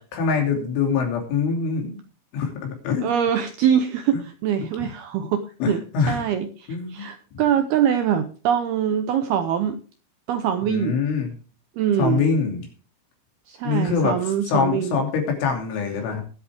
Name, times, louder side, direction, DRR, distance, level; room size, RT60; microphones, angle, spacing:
voice 1, 0.0-2.0 2.3-3.1 4.1-4.2 4.8-4.9 5.6-6.2 6.7-7.4 10.7-11.3 12.0-12.7 13.6-14.2 14.5-16.2, left 5 dB, 80° left, 3 dB, 5.3 m, -24 dB
voice 2, 3.0-9.8 10.3-11.0 11.8-12.2 13.5-15.0, right 9 dB, 80° right, 8 dB, 2.3 m, -23 dB
20.0 x 8.2 x 3.5 m, 0.36 s
omnidirectional pair, 5.5 m